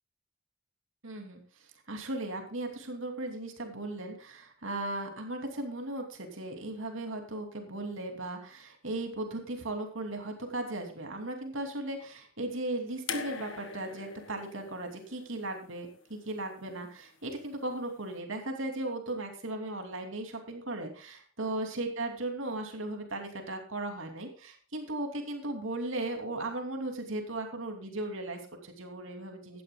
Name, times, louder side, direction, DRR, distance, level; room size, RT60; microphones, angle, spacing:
voice 1, 1.0-1.4 1.9-29.6, right 2 dB, 70° right, 4 dB, 2.8 m, -37 dB
sound 1, 13.1-16.2 17.4-17.5, left 6 dB, 60° left, 1.7 m, -42 dB
16.5 x 11.5 x 2.3 m, 0.40 s
head